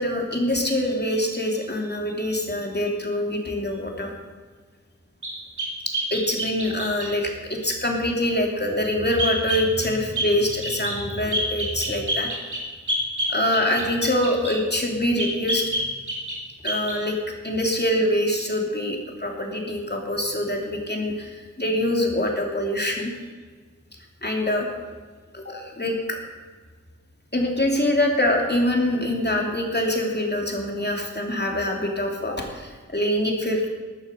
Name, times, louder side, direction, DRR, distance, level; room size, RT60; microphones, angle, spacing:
voice 1, 0.0-4.1 6.1-12.6 13.3-15.6 16.6-17.2 17.4-23.1 24.2-24.7 25.3-26.2 27.3-33.7, left 1 dB, 35° left, 1 dB, 2.7 m, -24 dB
sound 1, 5.2-7.1 9.2-9.7 10.2-10.3 10.6-11.0 11.3-14.6 15.2-16.4 16.7-17.0, equal, 85° right, 3.1 m, -27 dB
14.0 x 9.4 x 6.6 m, 1.5 s
wide cardioid pair, 50°, 29 cm